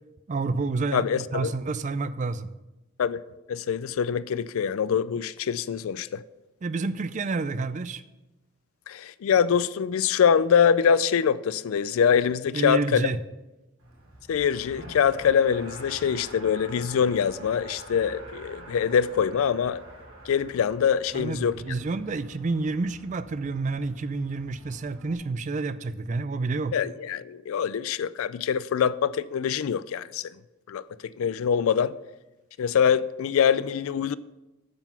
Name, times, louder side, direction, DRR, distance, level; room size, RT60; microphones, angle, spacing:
voice 1, 0.3-2.5 6.6-8.0 12.5-13.2 21.1-26.7, right 3 dB, 35° right, 0.3 m, -29 dB
voice 2, 0.9-1.5 3.0-3.2 3.5-6.2 8.9-13.1 14.3-19.8 20.3-21.5 26.7-30.3 30.7-30.8 31.2-31.9 32.6-34.2, left 7 dB, 75° left, 0.3 m, -24 dB
Race car auto racing, 13.8-25.1, right 1 dB, 80° right, 3.3 m, -46 dB
8.8 x 6.0 x 5.5 m
head